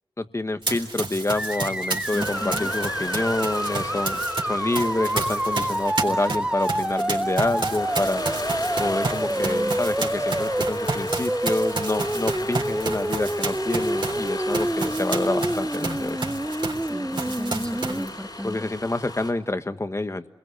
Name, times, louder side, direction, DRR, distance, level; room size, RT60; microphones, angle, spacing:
voice 1, 0.2-8.2 8.8-16.2 18.4-20.3, left 2 dB, 35° left, 10 dB, 1.4 m, -28 dB
Run, 0.6-4.4 4.7-16.9 17.1-18.1, right 3 dB, 65° right, 3.7 m, -31 dB
sound 1, 1.3-18.1, right 1 dB, 10° right, 1.2 m, -28 dB
voice 2, 2.1-2.7 9.3-9.8 16.9-18.6, equal, 10° left, 5 dB, 2.3 m, -35 dB
sound 2, 2.2-19.3, left 2 dB, 50° left, 4.6 m, -36 dB
28.0 x 21.0 x 7.9 m, 0.91 s
cardioid pair, 45°, 9 cm